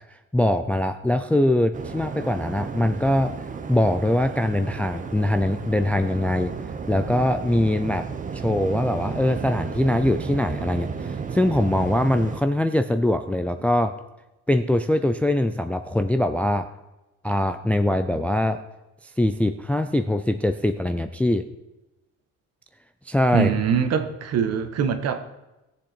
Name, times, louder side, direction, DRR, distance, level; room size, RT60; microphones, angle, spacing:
voice 1, 0.3-3.3 3.7-6.5 6.9-8.1 8.3-13.9 14.5-16.7 17.2-18.6 19.2-21.4 23.1-23.5, left 1 dB, 5° left, 9 dB, 0.4 m, -22 dB
Waves surf, 1.7-12.4, right 5 dB, 25° right, 0.7 m, -33 dB
voice 2, 23.3-25.2, right 7 dB, 55° right, 8 dB, 1.3 m, -23 dB
18.5 x 7.5 x 4.4 m, 0.99 s
cardioid pair, 160°, 30 cm